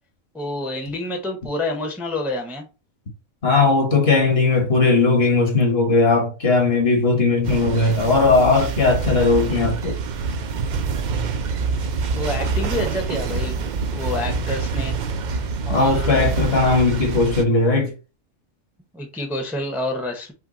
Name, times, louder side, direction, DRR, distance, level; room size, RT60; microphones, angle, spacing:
voice 1, 0.3-2.7 12.1-15.0 15.7-16.2 18.9-20.3, left 1 dB, ahead, 0.7 m, -28 dB
voice 2, 3.4-10.0 15.7-17.9, left 3 dB, 50° left, 1.5 m, -18 dB
sound 1, 7.4-17.4, right 4 dB, 70° right, 0.4 m, -26 dB
5.8 x 2.3 x 4.0 m
omnidirectional pair, 1.4 m